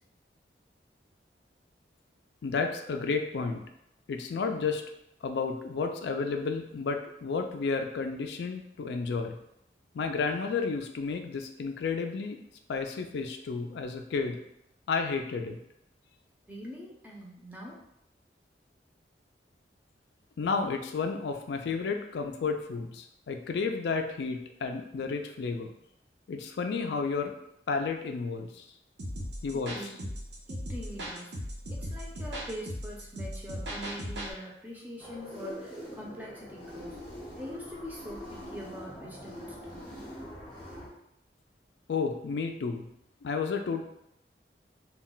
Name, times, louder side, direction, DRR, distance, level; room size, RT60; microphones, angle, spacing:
voice 1, 2.4-3.6 4.1-4.8 5.2-9.4 9.9-12.4 12.7-14.4 14.9-15.6 20.4-25.7 26.3-27.3 27.7-28.6 29.4-29.8 41.9-42.8 43.2-43.8, left 4 dB, 75° left, 5 dB, 0.3 m, -31 dB
voice 2, 16.5-17.8 29.5-30.1 30.5-31.3 31.7-37.0 37.3-39.8, equal, 10° right, -3 dB, 0.5 m, -43 dB
sound 1, 29.0-34.3, equal, 90° right, 0.7 m, -37 dB
sound 2, 35.0-40.9, equal, 30° left, 0.7 m, -43 dB
2.2 x 2.1 x 3.8 m, 0.79 s
head